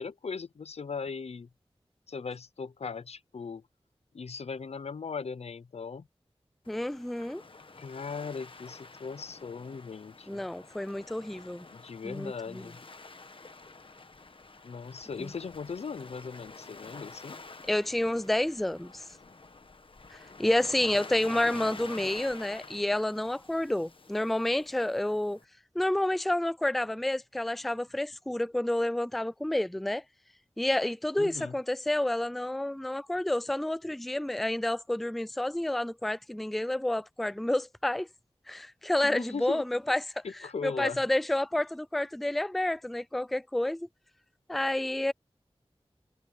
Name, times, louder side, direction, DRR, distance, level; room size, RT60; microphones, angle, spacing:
voice 1, 0.0-1.5 2.1-3.6 4.1-6.1 7.8-10.4 11.7-12.8 14.6-17.4 31.2-31.5 39.0-39.6 40.2-41.0, left 5 dB, 80° left, 0.7 m, -38 dB
Waves surf, 6.6-25.4, left 3 dB, 55° left, 1.4 m, -48 dB
voice 2, 6.7-7.4 10.3-11.7 12.0-12.6 15.2-15.3 17.7-19.0 20.1-25.4 25.8-30.0 30.6-38.1 38.5-40.2 40.6-43.9 44.5-45.1, left 1 dB, ahead, 0.3 m, -29 dB
wide cardioid pair, 80°, 10 cm